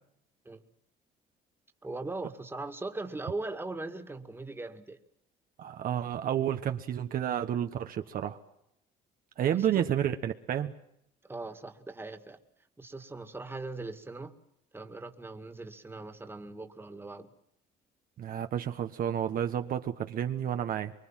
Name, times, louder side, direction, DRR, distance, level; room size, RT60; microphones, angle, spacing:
voice 1, 1.8-5.0 9.5-9.9 11.3-12.4 12.8-14.3 14.7-17.3, right 2 dB, 15° right, 7 dB, 2.1 m, -40 dB
voice 2, 5.6-8.4 9.4-10.7 18.2-20.9, right 10 dB, 55° right, 7 dB, 1.2 m, -30 dB
24.5 x 23.5 x 7.5 m, 0.78 s
cardioid pair, 110°, 17 cm